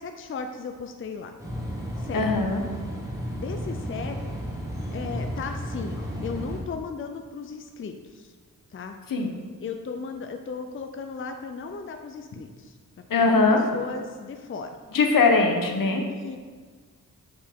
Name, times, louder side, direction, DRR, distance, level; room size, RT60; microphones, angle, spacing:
voice 1, 0.0-1.3 2.0-2.3 3.4-4.2 4.9-8.3 8.7-9.0 9.6-12.8 13.1-14.8 16.1-16.4, left 5 dB, 40° left, 5 dB, 0.5 m, -36 dB
sound 1, 1.4-6.6, equal, 10° right, 1.4 m, -33 dB
voice 2, 2.1-2.6 9.1-9.3 13.1-13.6 14.9-16.0, left 3 dB, 75° left, 3 dB, 0.9 m, -21 dB
7.7 x 4.4 x 3.6 m, 1.5 s
wide cardioid pair, 80°, 34 cm